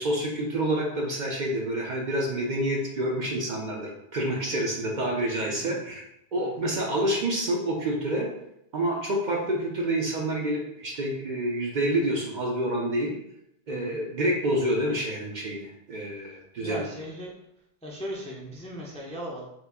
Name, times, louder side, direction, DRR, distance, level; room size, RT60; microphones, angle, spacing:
voice 1, 0.0-6.0 6.3-8.3 8.7-13.1 13.7-16.9, right 1 dB, 55° right, -1 dB, 0.6 m, -28 dB
voice 2, 4.5-4.8 5.4-5.8 6.4-6.5 13.7-14.0 16.6-17.3 17.8-19.4, equal, 10° left, -3 dB, 0.4 m, -38 dB
2.9 x 2.4 x 3.5 m, 0.79 s
omnidirectional pair, 1.1 m